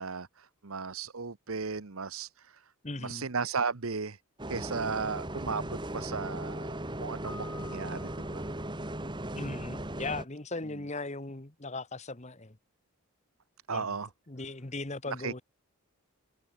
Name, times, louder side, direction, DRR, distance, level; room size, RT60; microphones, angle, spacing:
voice 1, 0.0-2.5 3.0-4.2 4.5-8.4 13.7-14.1 15.2-15.4, right 5 dB, 70° right, 1.1 m, -35 dB
voice 2, 2.8-3.3 9.4-12.6 13.7-13.9 14.3-15.4, left 2 dB, 30° left, 1.3 m, -38 dB
Bus, 4.4-10.3, right 1 dB, 20° right, 2.1 m, -37 dB
Keyboard (musical), 7.2-9.0, left 2 dB, 10° left, 3.6 m, -50 dB
head